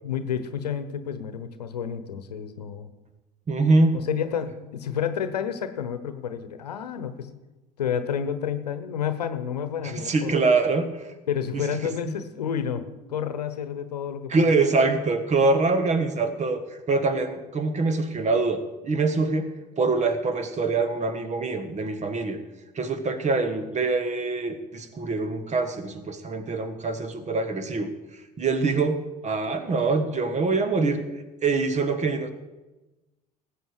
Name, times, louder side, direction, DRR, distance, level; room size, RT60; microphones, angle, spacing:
voice 1, 0.0-2.9 3.9-7.3 7.8-10.3 11.3-14.5, left 8 dB, 80° left, 11 dB, 1.0 m, -30 dB
voice 2, 3.5-4.0 9.8-11.0 11.5-11.6 14.3-22.4 22.8-27.9 28.4-31.0 31.4-32.3, right 3 dB, 35° right, 10 dB, 1.6 m, -24 dB
19.5 x 8.7 x 4.9 m, 1.1 s
figure-of-eight pair, 60°, 20 cm